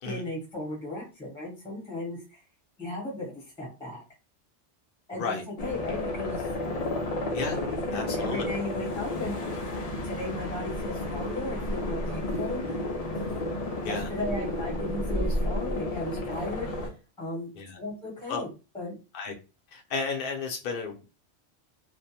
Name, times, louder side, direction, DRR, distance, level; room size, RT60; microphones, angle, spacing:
voice 1, 0.0-2.4 2.8-4.0 5.1-6.5 7.9-9.4 10.0-12.8 13.8-16.9 17.2-19.0, left 1 dB, 5° left, 0.7 m, -36 dB
sound 1, 5.6-16.9, left 1 dB, 85° left, 0.3 m, -31 dB
voice 2, 7.9-8.5 13.8-14.1 17.6-17.8 18.3-18.4 19.1-19.3 19.7-21.0, left 4 dB, 60° left, 0.6 m, -33 dB
2.4 x 2.1 x 2.7 m
omnidirectional pair, 1.2 m